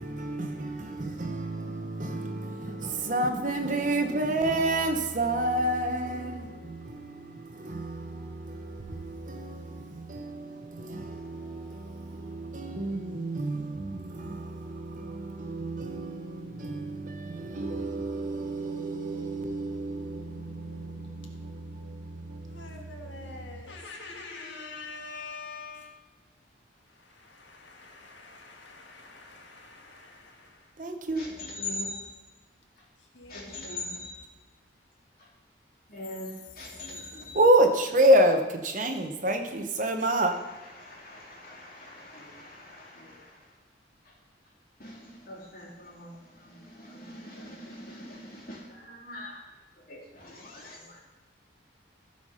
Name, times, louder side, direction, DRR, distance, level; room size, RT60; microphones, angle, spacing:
voice 1, 0.0-22.9 30.8-31.3 37.3-40.3, right 1 dB, 40° right, 0.9 m, -29 dB
voice 2, 22.4-26.0 26.9-30.8 33.0-34.3, left 3 dB, 70° left, 1.6 m, -45 dB
voice 3, 31.2-32.1 33.3-34.2 35.2-35.3 35.9-37.4 40.1-40.2 40.6-43.4 44.1-44.2 44.8-49.4 49.9-51.0, left 2 dB, 50° left, 2.8 m, -42 dB
14.5 x 5.0 x 5.5 m
head